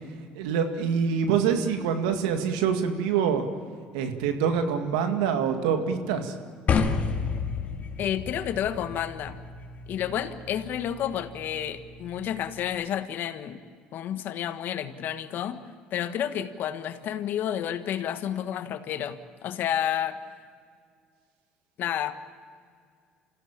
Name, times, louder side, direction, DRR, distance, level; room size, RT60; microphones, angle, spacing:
voice 1, 0.3-3.4 3.9-6.4, right 7 dB, 85° right, 6 dB, 2.0 m, -25 dB
sound 1, 6.7-12.8, left 5 dB, 45° left, 2.2 m, -32 dB
voice 2, 8.0-9.4 9.9-13.6 13.9-15.6 15.9-20.2 21.8-22.2, left 10 dB, 60° left, 10 dB, 1.4 m, -30 dB
27.0 x 16.0 x 8.9 m, 2.1 s
supercardioid pair, 75°, 4 cm